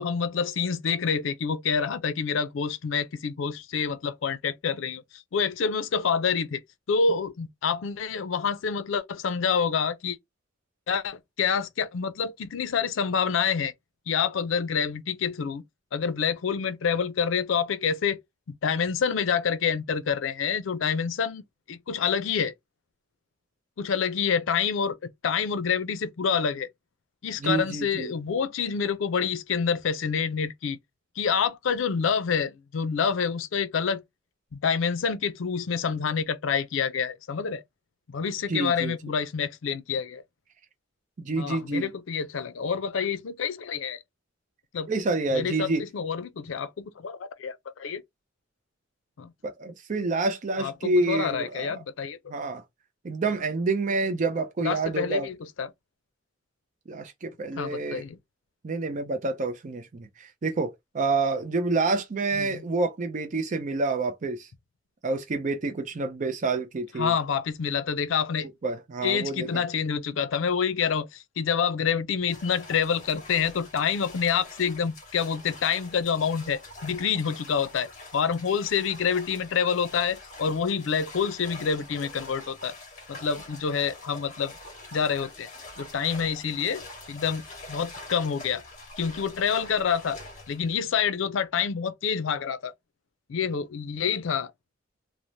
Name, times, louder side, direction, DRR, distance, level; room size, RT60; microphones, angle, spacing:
voice 1, 0.0-6.6 6.9-10.2 10.9-13.7 14.1-15.6 15.9-18.2 18.6-21.4 21.7-22.5 23.8-25.0 25.2-26.7 27.2-30.8 31.2-34.0 34.5-37.6 38.1-40.2 41.4-44.0 44.7-44.9 45.3-48.0 49.2-49.3 50.6-52.2 54.6-55.7 57.6-58.2 62.3-62.7 67.0-68.5 69.0-82.7 83.1-84.5 84.9-85.5 85.8-88.6 89.0-90.2 90.5-92.7 93.3-94.5, left 6 dB, 85° left, 0.4 m, -27 dB
voice 2, 27.4-28.1 38.5-38.9 41.2-41.9 44.9-45.8 49.4-51.8 52.3-52.6 53.0-55.3 56.9-58.0 58.6-64.5 65.0-67.1 68.6-69.5, right 3 dB, 40° right, 0.4 m, -28 dB
sound 1, 72.3-90.8, left 2 dB, 40° left, 1.4 m, -45 dB
3.1 x 2.0 x 2.6 m
head